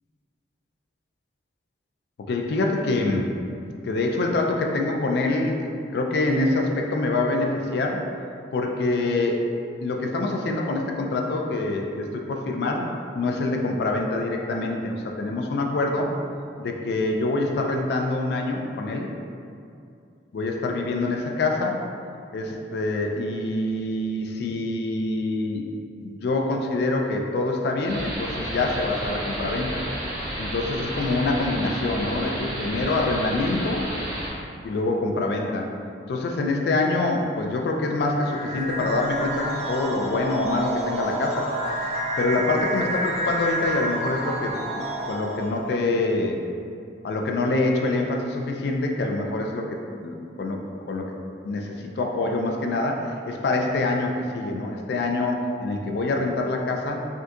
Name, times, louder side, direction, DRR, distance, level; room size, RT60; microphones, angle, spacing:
voice 1, 2.2-3.3 3.8-8.1 8.5-9.5 9.8-12.9 13.1-16.1 16.6-19.1 20.3-21.8 22.3-25.7 26.0-29.8 30.4-33.9 34.6-35.7 36.1-41.5 42.2-46.4 47.0-50.6 50.9-51.2 51.4-57.1, left 2 dB, 60° left, 2 dB, 0.3 m, -25 dB
sound 1, 27.9-34.3, right 1 dB, 55° right, 0.8 m, -32 dB
sound 2, 38.1-45.7, right 1 dB, 35° right, 0.3 m, -29 dB
3.6 x 2.3 x 2.6 m, 2.5 s
head